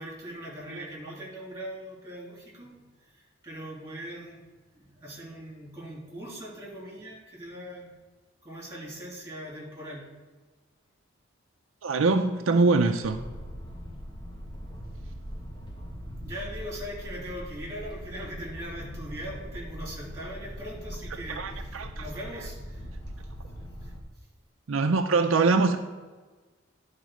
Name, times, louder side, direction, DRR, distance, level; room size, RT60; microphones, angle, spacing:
voice 1, 0.0-2.7 3.1-4.4 4.7-7.9 8.4-10.1 16.2-22.9 23.8-23.9, equal, 15° right, -3 dB, 3.1 m, -40 dB
voice 2, 11.8-13.2 21.3-22.0 24.7-25.8, right 3 dB, 75° right, 5 dB, 0.5 m, -23 dB
sound 1, 13.0-24.0, equal, 20° left, 1.4 m, -41 dB
10.5 x 4.0 x 6.3 m, 1.3 s
head